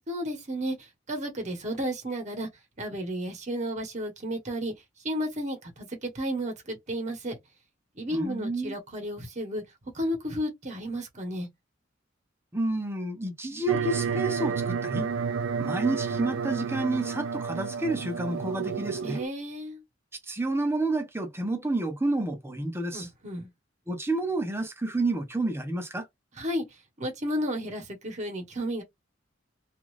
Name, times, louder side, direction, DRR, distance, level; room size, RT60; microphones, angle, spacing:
voice 1, 0.1-2.5 2.8-4.7 5.0-7.4 8.0-9.6 9.9-11.5 19.0-19.8 22.9-23.5 26.4-26.6 27.0-28.8, equal, 40° right, 1.1 m, -32 dB
voice 2, 8.1-8.7 12.5-15.1 15.6-19.2 20.3-23.1 23.9-26.1, right 2 dB, 15° right, 0.7 m, -29 dB
sound 1, 13.7-19.3, right 6 dB, 80° right, 0.4 m, -30 dB
2.5 x 2.3 x 3.1 m
head